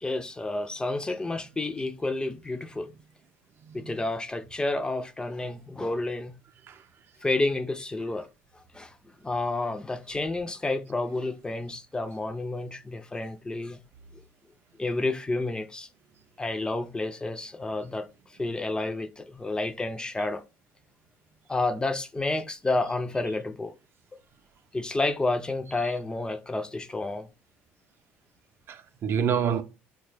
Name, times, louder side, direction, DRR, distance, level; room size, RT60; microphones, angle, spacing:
voice 1, 0.0-2.9 3.7-6.3 7.2-8.3 8.7-8.9 9.2-13.8 14.8-15.9 16.4-18.1 18.4-20.4 21.5-23.7 24.7-27.3, left 2 dB, 15° left, 0.4 m, -30 dB
voice 2, 3.6-4.0 6.7-6.8 28.7-29.6, right 7 dB, 50° right, 0.4 m, -28 dB
3.5 x 2.2 x 3.2 m
supercardioid pair, 85°, 5 cm